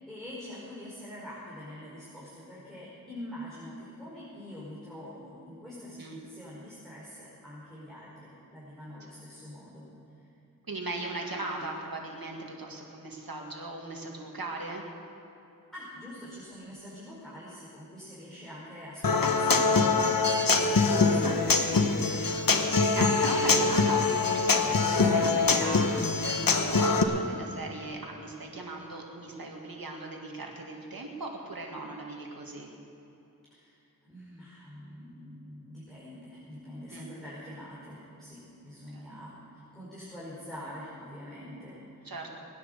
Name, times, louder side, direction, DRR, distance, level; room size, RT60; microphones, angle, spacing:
voice 1, 0.0-9.8 10.2-10.3 15.7-20.0 20.6-20.8 21.1-21.3 21.7-22.3 33.5-33.8 34.0-42.1, equal, ahead, -9 dB, 4.7 m, -45 dB
voice 2, 10.7-14.9 22.9-32.7 36.9-37.1 38.9-39.1 42.0-42.3, right 2 dB, 85° right, 0 dB, 2.0 m, -38 dB
Human voice / Acoustic guitar, 19.0-27.0, left 4 dB, 75° left, 1.0 m, -24 dB
19.5 x 10.5 x 6.6 m, 2.8 s
wide cardioid pair, 40°, 34 cm